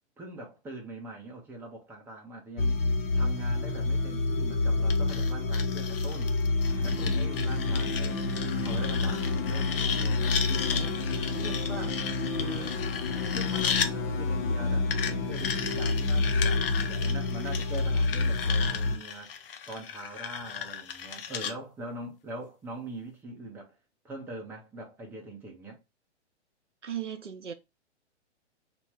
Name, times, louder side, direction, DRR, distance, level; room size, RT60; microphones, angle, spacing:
voice 1, 0.2-2.8 3.1-6.4 6.8-8.2 8.6-11.0 11.3-12.0 12.4-12.8 13.3-19.4 19.7-23.7 24.0-25.8, right 2 dB, 5° right, 0.7 m, -42 dB
sound 1, 2.6-19.0, left 3 dB, 15° left, 0.4 m, -28 dB
sound 2, 4.9-13.9 14.9-21.5, left 7 dB, 55° left, 0.6 m, -35 dB
Boom, 6.7-11.1, left 1 dB, 80° left, 1.5 m, -45 dB
voice 2, 26.8-27.5, right 10 dB, 85° right, 0.7 m, -36 dB
3.1 x 2.9 x 4.5 m
figure-of-eight pair, 120°, 35 cm